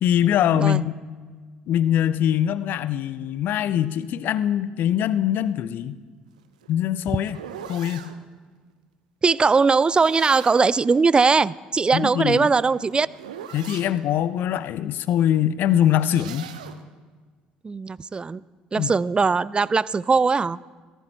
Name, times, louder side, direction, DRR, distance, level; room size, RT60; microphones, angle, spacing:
voice 1, 0.0-0.9 1.7-6.0 6.7-7.4 7.7-8.1 11.9-12.5 13.5-16.5 18.7-18.9, left 10 dB, 55° left, 16 dB, 0.6 m, -23 dB
sound 1, 6.4-8.2 9.6-10.8 12.2-14.0 15.7-16.8, right 8 dB, 75° right, 0.9 m, -41 dB
voice 2, 9.2-13.1 17.6-18.4 18.7-20.6, right 4 dB, 25° right, 22 dB, 0.4 m, -20 dB
17.5 x 13.5 x 4.4 m, 1.5 s
figure-of-eight pair, 55°, 4 cm